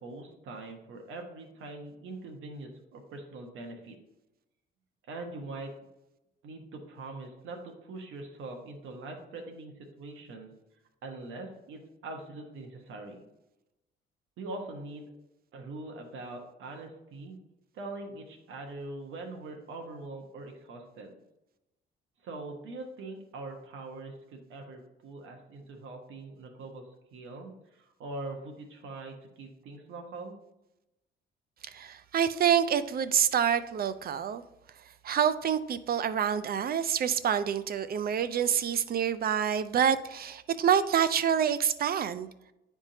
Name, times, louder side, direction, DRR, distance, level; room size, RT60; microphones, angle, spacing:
voice 1, 0.0-4.0 5.1-5.7 6.4-10.5 11.0-13.2 14.4-15.0 15.5-17.3 17.7-21.1 22.2-26.8 27.1-30.4, right 2 dB, 80° right, 3 dB, 1.2 m, -42 dB
voice 2, 31.7-34.4 35.0-42.3, right 8 dB, 50° right, 13 dB, 0.5 m, -27 dB
10.0 x 3.6 x 2.8 m, 0.91 s
cardioid pair, 90°, 20 cm